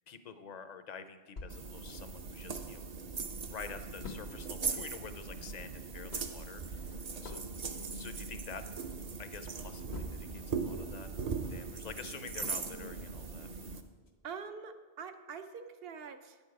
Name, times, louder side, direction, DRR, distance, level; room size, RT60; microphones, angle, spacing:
voice 1, 0.1-2.8 3.5-7.0 7.2-7.4 7.9-8.6 9.2-11.1 11.5-13.5, left 6 dB, 50° left, 10 dB, 0.6 m, -48 dB
sound 1, 1.4-2.9 3.3-3.4 3.6-10.6 11.0-13.1 13.6-13.7 14.1-14.2, left 3 dB, 90° left, 1.3 m, -49 dB
sound 2, 1.5-13.8, right 5 dB, 45° right, 0.6 m, -40 dB
voice 2, 14.2-16.4, right 6 dB, 70° right, 8 dB, 0.9 m, -45 dB
9.7 x 7.1 x 4.7 m, 1.3 s
omnidirectional pair, 1.0 m